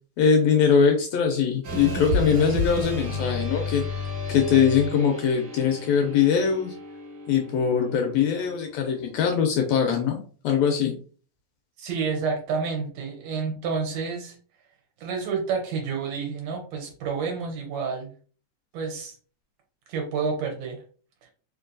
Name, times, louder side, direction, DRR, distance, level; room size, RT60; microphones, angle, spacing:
voice 1, 0.2-6.7 7.3-10.2 10.4-11.0, left 7 dB, 75° left, 3 dB, 1.6 m, -22 dB
sound 1, 1.6-10.0, left 1 dB, 55° right, 1.7 m, -32 dB
voice 2, 11.8-14.4 15.0-18.1 18.7-19.2 19.9-20.8, right 5 dB, 75° right, 1 dB, 1.8 m, -29 dB
4.5 x 2.6 x 2.5 m, 0.41 s
omnidirectional pair, 3.4 m